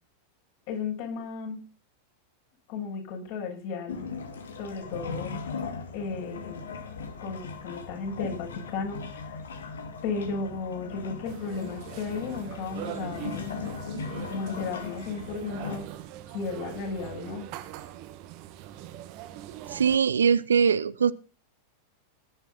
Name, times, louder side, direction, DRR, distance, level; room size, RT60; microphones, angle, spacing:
voice 1, 0.7-1.7 2.7-4.0 4.6-5.7 5.9-6.7 7.2-9.4 10.0-13.7 14.3-15.9 16.3-17.5, left 4 dB, 50° left, 0 dB, 7.8 m, -35 dB
sound 1, 3.9-15.8, left 5 dB, 65° left, 2.6 m, -38 dB
sound 2, 11.2-20.0, right 12 dB, 45° right, 1.6 m, -42 dB
voice 2, 19.7-21.1, right 6 dB, 70° right, 18 dB, 0.7 m, -22 dB
18.0 x 11.5 x 4.3 m, 0.36 s
figure-of-eight pair, 90°, 0 cm